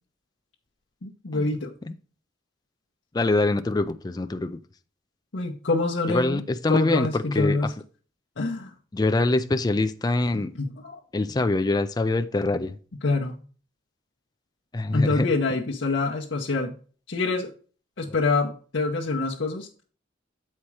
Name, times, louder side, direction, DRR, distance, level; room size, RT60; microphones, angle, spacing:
voice 1, 1.0-1.7 5.3-6.4 6.7-7.7 8.4-8.7 10.3-11.0 13.0-13.4 14.9-16.7 17.1-17.5 18.0-19.7, left 3 dB, 70° left, 0.8 m, -26 dB
voice 2, 3.1-4.6 6.1-7.6 8.9-10.5 11.1-12.8 14.7-15.3, left 2 dB, 20° left, 0.4 m, -24 dB
7.2 x 4.4 x 4.8 m
head